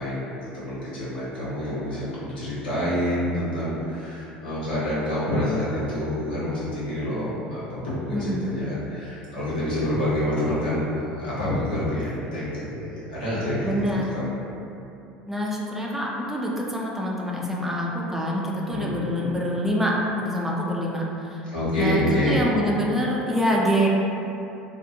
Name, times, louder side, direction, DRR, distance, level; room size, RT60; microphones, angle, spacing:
voice 1, 0.0-14.3 18.7-19.4 21.5-22.5, left 1 dB, 90° left, -10 dB, 0.9 m, -27 dB
voice 2, 8.1-8.4 13.6-14.2 15.3-21.4 21.8-23.9, equal, 5° right, -4 dB, 0.4 m, -26 dB
2.5 x 2.4 x 2.6 m, 2.8 s
hypercardioid pair, 75°, 5 cm